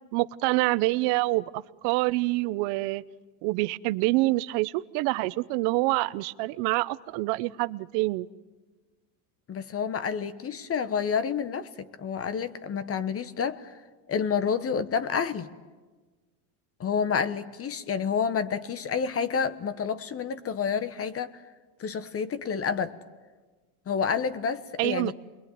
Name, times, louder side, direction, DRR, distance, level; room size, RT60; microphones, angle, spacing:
voice 1, 0.1-3.0 3.4-8.3 24.8-25.1, right 21 dB, 65° right, 0.9 m, -26 dB
voice 2, 9.5-13.7 14.1-15.5 16.8-21.4 21.8-22.9 23.9-25.1, left 6 dB, 30° left, 1.3 m, -29 dB
28.0 x 22.5 x 9.4 m
supercardioid pair, 115°, 45 cm